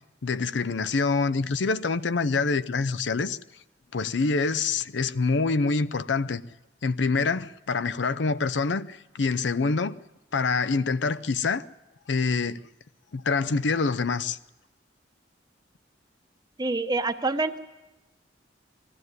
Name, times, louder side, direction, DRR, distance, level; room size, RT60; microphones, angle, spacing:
voice 1, 0.2-3.4 3.9-6.4 6.8-9.9 10.3-11.7 12.1-12.6 13.1-14.4, left 4 dB, 75° left, 0.6 m, -26 dB
voice 2, 16.6-17.6, right 3 dB, 25° right, 0.9 m, -26 dB
20.5 x 13.5 x 9.5 m
head